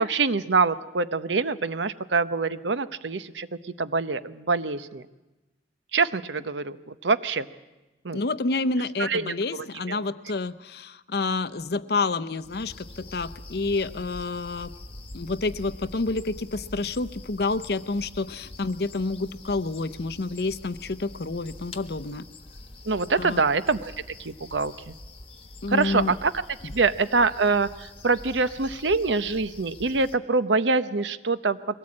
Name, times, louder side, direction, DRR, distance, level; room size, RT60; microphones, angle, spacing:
voice 1, 0.0-3.5 3.8-5.0 5.9-7.5 8.0-8.2 9.0-10.1 22.9-23.9 24.2-24.9 25.7-26.3 26.7-31.8, right 4 dB, 80° right, 13 dB, 0.9 m, -25 dB
voice 2, 8.1-14.7 15.1-22.3 23.2-23.4 25.6-26.1 26.6-26.7, left 3 dB, 60° left, 15 dB, 0.7 m, -29 dB
sound 1, 12.4-30.2, left 2 dB, 30° left, 1.2 m, -45 dB
22.5 x 18.0 x 8.7 m, 1.1 s
head